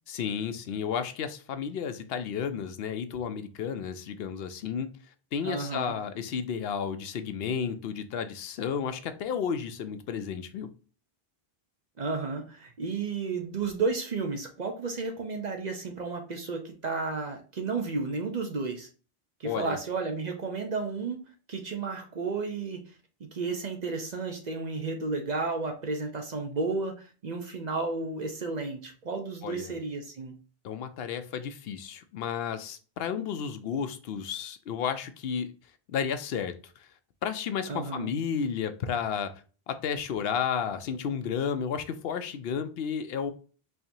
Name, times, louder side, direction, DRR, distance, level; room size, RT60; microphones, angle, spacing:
voice 1, 0.1-4.9 5.3-10.7 19.4-19.8 29.4-29.7 30.6-35.5 35.9-36.9 37.2-39.3 39.7-43.3, left 7 dB, 75° left, 10 dB, 0.8 m, -32 dB
voice 2, 5.4-5.9 12.0-18.9 19.4-21.2 21.5-22.9 23.2-30.4 37.7-38.1, right 4 dB, 50° right, 4 dB, 0.7 m, -32 dB
4.3 x 2.8 x 2.6 m, 0.37 s
omnidirectional pair, 1.0 m